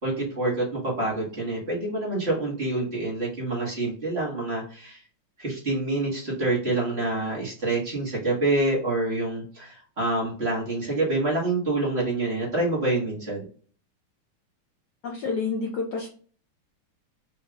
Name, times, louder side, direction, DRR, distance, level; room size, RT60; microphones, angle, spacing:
voice 1, 0.0-5.0 5.4-13.5, right 2 dB, 30° right, -5 dB, 1.6 m, -27 dB
voice 2, 15.0-16.1, left 4 dB, 70° left, 0 dB, 1.0 m, -29 dB
4.9 x 2.8 x 2.3 m, 0.43 s
omnidirectional pair, 2.4 m